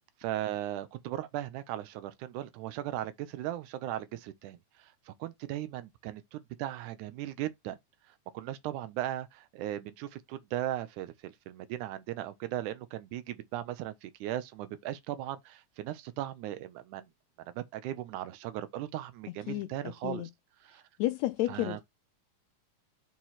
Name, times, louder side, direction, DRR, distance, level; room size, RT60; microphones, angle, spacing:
voice 1, 0.2-7.8 8.1-17.1 17.5-20.3 20.6-20.8 21.5-21.8, right 13 dB, 90° right, 2.2 m, -37 dB
voice 2, 21.0-21.9, left 16 dB, 80° left, 1.7 m, -31 dB
7.1 x 3.2 x 5.7 m
omnidirectional pair, 3.5 m